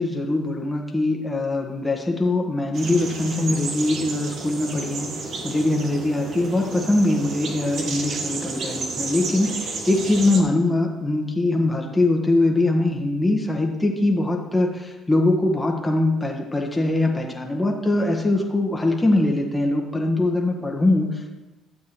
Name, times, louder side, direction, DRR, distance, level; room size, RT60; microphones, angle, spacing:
voice 1, 0.0-5.1 5.4-21.4, left 2 dB, 15° left, 1 dB, 1.4 m, -22 dB
sound 1, 2.7-10.4, right 3 dB, 60° right, 1.4 m, -32 dB
12.5 x 7.2 x 3.1 m, 1.1 s
hypercardioid pair, 60°, 0 cm